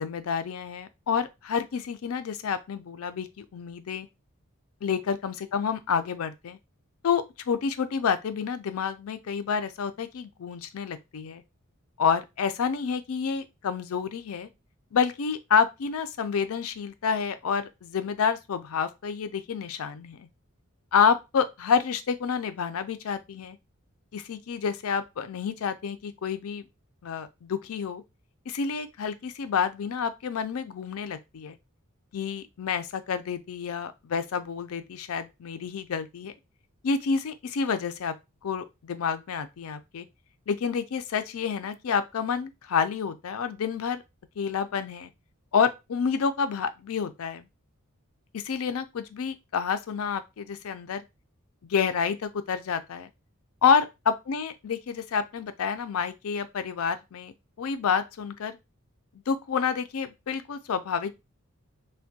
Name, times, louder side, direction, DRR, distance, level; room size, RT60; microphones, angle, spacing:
voice 1, 0.0-4.1 4.8-6.6 7.0-11.4 12.0-14.5 14.9-20.3 20.9-23.6 24.1-26.6 27.0-28.0 28.5-31.6 32.1-36.3 36.8-38.1 38.4-40.1 40.5-44.0 44.4-45.1 45.5-47.5 48.3-51.0 51.7-53.1 53.6-57.3 57.6-58.6 59.3-61.1, left 6 dB, 80° left, 0.4 m, -28 dB
3.3 x 2.2 x 2.7 m
head